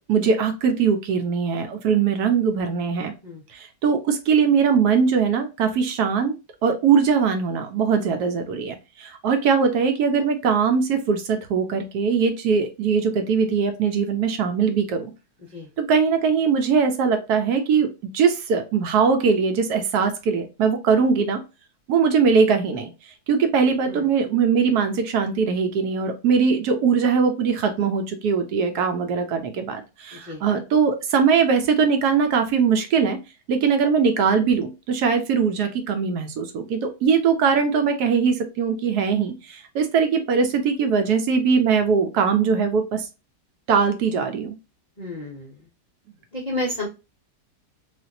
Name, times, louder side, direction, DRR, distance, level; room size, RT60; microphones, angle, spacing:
voice 1, 0.1-3.1 3.5-6.4 6.6-15.1 15.8-21.4 21.9-22.9 23.3-33.2 33.5-43.1 43.7-44.5, right 6 dB, 75° right, 7 dB, 1.1 m, -21 dB
voice 2, 30.1-30.4 45.0-45.6 46.3-46.9, left 1 dB, 45° left, -3 dB, 0.5 m, -31 dB
3.4 x 2.7 x 2.6 m, 0.28 s
omnidirectional pair, 1.8 m